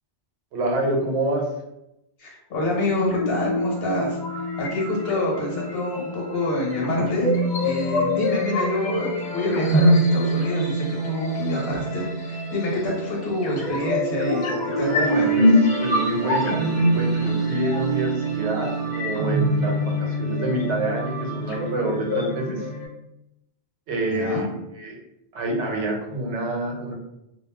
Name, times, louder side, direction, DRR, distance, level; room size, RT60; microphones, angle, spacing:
voice 1, 0.5-1.5 14.8-15.5 15.8-22.7 23.9-24.4 24.7-25.0 25.3-26.9, right 1 dB, 90° right, -1 dB, 1.0 m, -27 dB
voice 2, 2.2-4.2 4.6-15.3 24.0-24.4, left 1 dB, 65° left, -3 dB, 1.1 m, -27 dB
sound 1, 2.9-22.9, equal, 50° left, 0.6 m, -24 dB
2.3 x 2.0 x 3.4 m, 0.88 s
omnidirectional pair, 1.1 m